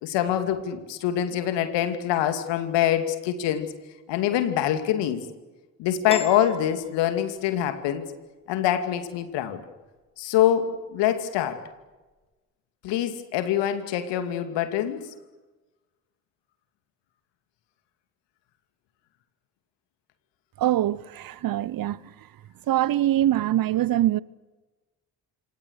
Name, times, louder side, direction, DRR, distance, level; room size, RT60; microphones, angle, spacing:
voice 1, 0.0-3.7 4.1-5.3 5.8-8.1 8.5-9.6 10.2-11.6 12.8-15.1, left 11 dB, 70° left, 2.7 m, -25 dB
Piano, 6.1-7.6, left 2 dB, 15° left, 3.5 m, -36 dB
voice 2, 20.6-22.0 22.7-24.2, right 13 dB, 50° right, 0.9 m, -23 dB
27.0 x 26.0 x 6.6 m
hypercardioid pair, 45°, 45 cm